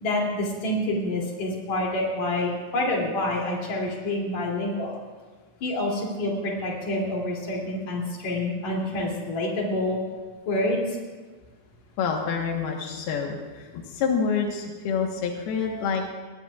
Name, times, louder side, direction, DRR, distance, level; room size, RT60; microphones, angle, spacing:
voice 1, 0.0-4.9 5.6-10.0 10.5-10.8, left 1 dB, 50° left, -2 dB, 3.9 m, -27 dB
voice 2, 12.0-16.1, left 6 dB, 85° left, 1 dB, 3.3 m, -27 dB
23.0 x 18.5 x 2.4 m, 1.4 s
omnidirectional pair, 4.3 m